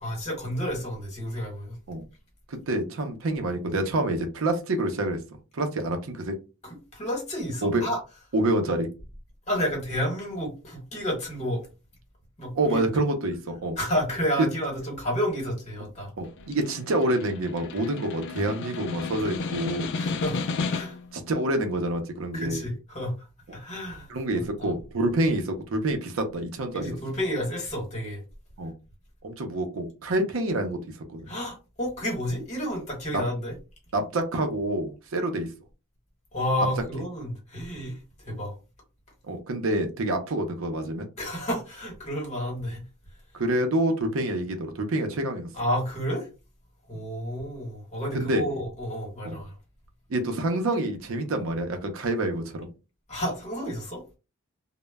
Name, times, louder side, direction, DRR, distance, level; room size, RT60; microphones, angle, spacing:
voice 1, 0.0-1.8 6.6-8.0 9.5-11.7 12.4-12.8 13.8-16.1 20.0-20.4 20.7-21.0 22.3-23.1 23.5-24.1 24.3-24.7 26.7-28.2 31.3-33.5 36.3-38.5 41.2-42.8 45.5-46.3 46.9-49.5 53.1-54.0, equal, 30° left, 1.1 m, -30 dB
voice 2, 2.5-5.2 5.5-6.3 7.6-7.8 8.3-8.9 12.6-13.8 14.4-14.5 16.2-19.9 21.1-22.6 24.1-27.0 28.6-28.7 29.2-30.8 31.1-31.3 33.1-33.2 33.9-35.5 38.3-38.4 39.2-41.1 43.3-45.5 48.1-48.4 49.2-49.4 50.1-52.7, right 1 dB, 65° right, 0.5 m, -27 dB
Snare drum, 16.2-21.1, left 4 dB, 55° left, 0.3 m, -33 dB
2.1 x 2.0 x 3.3 m
head